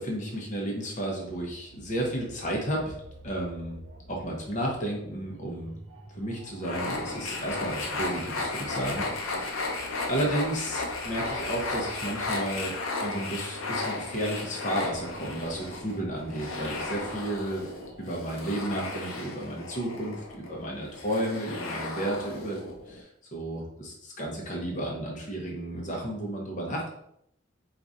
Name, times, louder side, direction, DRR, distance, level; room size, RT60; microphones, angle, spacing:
voice 1, 0.0-2.9 3.2-3.8 4.1-5.7 6.1-9.7 10.1-12.7 13.0-17.7 18.0-22.6 22.9-26.9, right 1 dB, 40° left, -1 dB, 0.8 m, -32 dB
sound 1, 1.2-18.2, right 1 dB, 70° right, 0.6 m, -49 dB
sound 2, 6.6-23.0, left 3 dB, 90° left, 0.7 m, -34 dB
4.5 x 2.5 x 2.6 m, 0.73 s
head